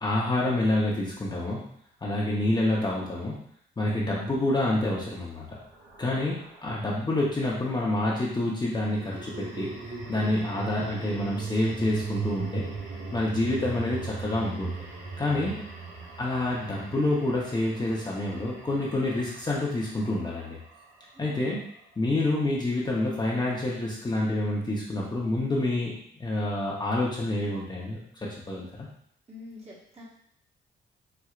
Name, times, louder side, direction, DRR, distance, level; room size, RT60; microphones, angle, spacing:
voice 1, 0.0-1.6 2.0-3.4 3.8-5.6 6.0-9.7 10.1-12.7 13.1-14.7 15.2-15.6 16.2-20.6 21.2-21.6 22.0-25.9 26.2-28.9, left 1 dB, 20° left, -5 dB, 0.9 m, -28 dB
sound 1, 5.5-7.1 8.7-21.0, right 4 dB, 85° right, 1.2 m, -39 dB
voice 2, 15.3-15.8 21.1-21.6 29.3-30.0, left 2 dB, 30° right, -6 dB, 1.4 m, -46 dB
4.4 x 2.5 x 2.4 m, 0.67 s
cardioid pair, 90°, 20 cm